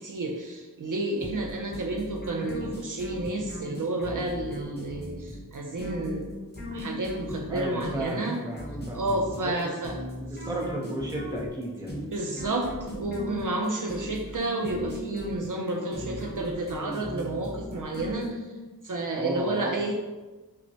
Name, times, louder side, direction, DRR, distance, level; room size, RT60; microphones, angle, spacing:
voice 1, 0.0-6.4 6.7-8.4 8.9-10.0 11.9-18.4 18.8-19.9, right 2 dB, 60° right, 0 dB, 0.5 m, -31 dB
sound 1, 1.2-18.7, equal, 30° left, 0.9 m, -38 dB
voice 2, 7.5-8.6 8.9-9.1 9.4-9.6 10.0-12.0 19.1-19.9, right 1 dB, 10° right, -2 dB, 0.7 m, -34 dB
5.4 x 2.1 x 2.7 m, 1.2 s
wide cardioid pair, 75°, 36 cm